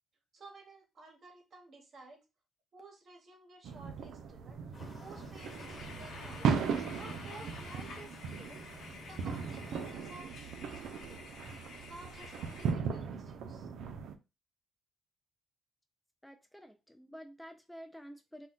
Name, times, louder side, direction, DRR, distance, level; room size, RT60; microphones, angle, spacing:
voice 1, 0.3-2.2 2.7-4.6 5.0-6.7 7.0-8.6 9.1-11.3 11.9-13.7, right 3 dB, 50° right, 3 dB, 0.8 m, -54 dB
sound 1, 3.6-14.2, right 6 dB, 75° right, 0.3 m, -38 dB
sound 2, 4.7-9.9, left 2 dB, 30° left, 1.3 m, -52 dB
sound 3, 5.3-12.7, left 3 dB, 75° left, 0.7 m, -50 dB
voice 2, 16.2-18.5, equal, 5° left, 6 dB, 0.3 m, -50 dB
2.1 x 2.1 x 3.7 m, 0.27 s
cardioid pair, 90°, 0 cm